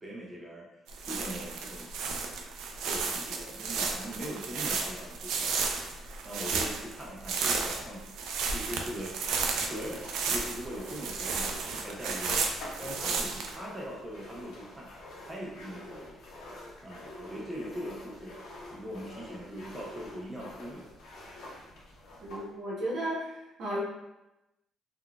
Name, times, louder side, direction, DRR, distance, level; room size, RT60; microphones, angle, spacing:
voice 1, 0.0-0.7 1.0-1.9 2.9-5.8 6.2-8.0 8.4-9.3 9.6-12.5 12.8-14.9 15.3-16.2 16.8-20.9, equal, 15° right, -4 dB, 0.4 m, -41 dB
sound 1, 0.9-13.6, right 4 dB, 85° right, 0.3 m, -33 dB
sound 2, 9.3-22.5, left 1 dB, 75° left, 0.7 m, -47 dB
voice 2, 22.2-23.8, equal, 55° right, -3 dB, 0.8 m, -34 dB
3.7 x 2.2 x 2.2 m, 0.95 s
cardioid pair, 170°, 0 cm